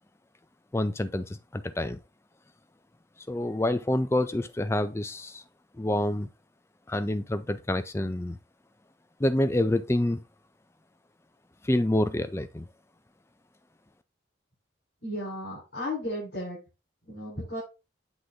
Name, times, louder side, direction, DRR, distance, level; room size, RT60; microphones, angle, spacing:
voice 1, 0.7-2.0 3.3-5.4 5.8-6.3 6.9-8.4 9.2-10.2 11.6-12.7, left 1 dB, 15° left, 0.4 m, -27 dB
voice 2, 15.0-16.6 17.0-17.6, left 1 dB, 55° left, 4.3 m, -34 dB
8.0 x 3.4 x 3.7 m
head